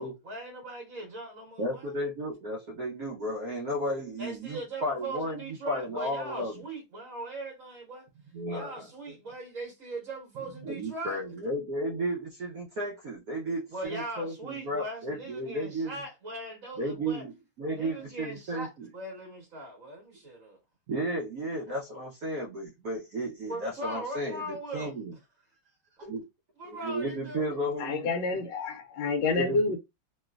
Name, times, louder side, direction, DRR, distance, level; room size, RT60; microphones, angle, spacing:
voice 1, 0.0-1.9 4.2-8.1 8.5-11.2 13.7-17.2 17.7-20.6 23.5-24.9 26.0-26.1 26.6-27.5, right 1 dB, 45° right, 1.5 m, -40 dB
voice 2, 1.6-6.5 8.3-8.9 10.6-16.0 16.8-18.9 20.9-25.1 26.0-26.2 26.6-28.1 29.3-29.8, right 1 dB, 65° right, 0.9 m, -34 dB
voice 3, 27.8-29.8, left 3 dB, 75° left, 1.2 m, -28 dB
3.1 x 3.0 x 2.3 m
omnidirectional pair, 2.2 m